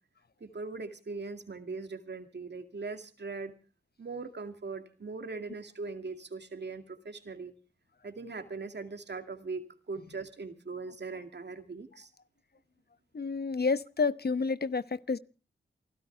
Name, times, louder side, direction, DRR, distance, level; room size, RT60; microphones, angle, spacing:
voice 1, 0.4-3.5 4.0-7.5 8.0-12.1, right 4 dB, 60° right, 2.2 m, -40 dB
voice 2, 13.1-15.2, left 4 dB, 55° left, 0.9 m, -29 dB
28.5 x 12.5 x 3.3 m
cardioid pair, 40°, 20 cm